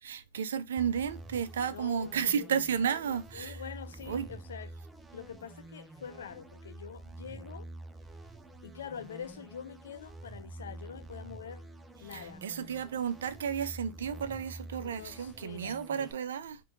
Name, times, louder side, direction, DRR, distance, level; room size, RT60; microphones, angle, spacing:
voice 1, 0.0-3.6 4.1-4.3 12.1-16.6, right 7 dB, 85° right, 0.4 m, -33 dB
sound 1, 0.8-16.1, right 2 dB, 10° right, 0.4 m, -48 dB
voice 2, 1.7-2.6 3.3-4.8 5.1-7.7 8.6-11.7 12.0-12.5 14.8-15.8, left 8 dB, 85° left, 0.5 m, -45 dB
2.7 x 2.6 x 3.6 m
hypercardioid pair, 125°, 0 cm